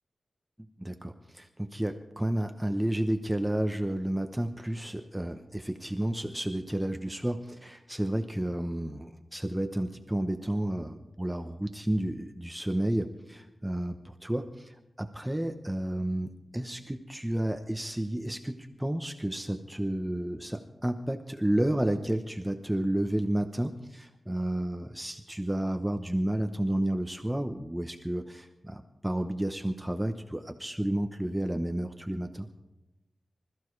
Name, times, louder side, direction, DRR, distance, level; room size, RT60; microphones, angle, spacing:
voice 1, 0.8-32.5, right 1 dB, 10° right, 6 dB, 0.8 m, -31 dB
25.5 x 14.5 x 3.2 m, 0.97 s
wide cardioid pair, 110°, 0 cm